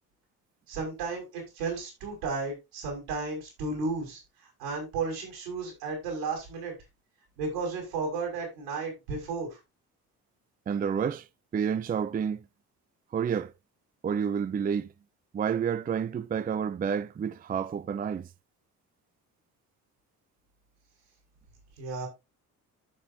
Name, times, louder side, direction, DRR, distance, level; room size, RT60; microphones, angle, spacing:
voice 1, 0.7-4.2 4.6-6.7 7.4-9.6 21.8-22.1, right 4 dB, 75° right, 6.4 m, -33 dB
voice 2, 10.7-11.3 11.5-12.4 13.1-13.5 14.0-14.9 15.3-18.3, right 7 dB, 20° right, 0.5 m, -29 dB
14.0 x 6.8 x 2.7 m
figure-of-eight pair, 50°, 45 cm